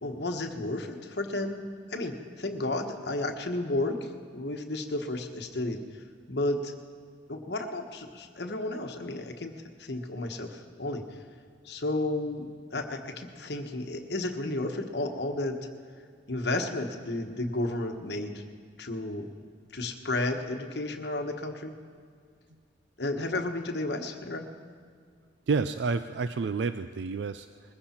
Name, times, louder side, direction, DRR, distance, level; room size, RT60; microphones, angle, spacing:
voice 1, 0.0-5.8 6.3-6.7 7.3-9.5 9.8-11.0 11.6-15.7 16.3-18.4 18.8-19.3 19.7-21.7 23.0-24.5, left 2 dB, 65° left, 4 dB, 1.2 m, -32 dB
voice 2, 25.5-27.7, right 4 dB, 75° right, 11 dB, 0.4 m, -30 dB
21.0 x 15.0 x 4.4 m, 2.1 s
head